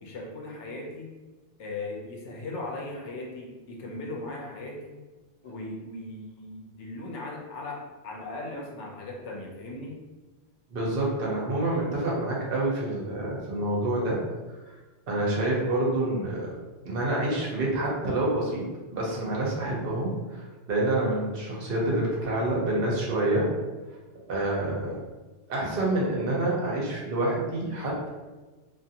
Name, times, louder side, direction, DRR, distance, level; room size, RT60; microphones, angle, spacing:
voice 1, 0.0-1.2 1.6-5.0 5.4-10.0, left 2 dB, 90° left, 0 dB, 1.0 m, -38 dB
voice 2, 10.7-14.2 14.5-14.8 15.1-16.5 16.8-18.6 18.9-23.5 24.3-25.0 25.5-28.1, right 1 dB, 60° right, -4 dB, 0.9 m, -27 dB
2.5 x 2.5 x 2.7 m, 1.2 s
omnidirectional pair, 1.2 m